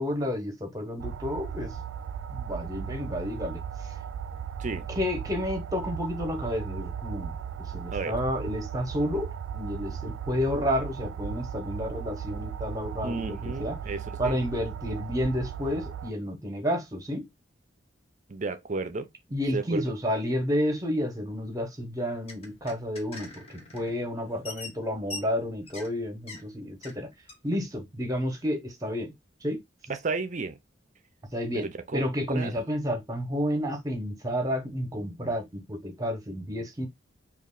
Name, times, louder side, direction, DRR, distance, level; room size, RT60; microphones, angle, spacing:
voice 1, 0.0-1.7 2.3-3.6 5.0-13.8 14.2-17.2 19.3-27.1 27.4-29.1 29.4-29.6 31.3-31.7 31.9-36.9, equal, 20° right, 0.9 m, -30 dB
sound 1, 1.0-16.1, right 8 dB, 85° right, 0.3 m, -37 dB
voice 2, 13.0-14.4 18.3-19.1 19.5-19.9 29.9-30.6 31.5-32.5, right 3 dB, 40° right, 0.5 m, -33 dB
sound 2, 22.0-24.0 24.2-26.0 26.3-26.4 26.8-27.0 27.3-27.4, left 3 dB, 35° left, 0.9 m, -43 dB
3.1 x 2.5 x 3.8 m
head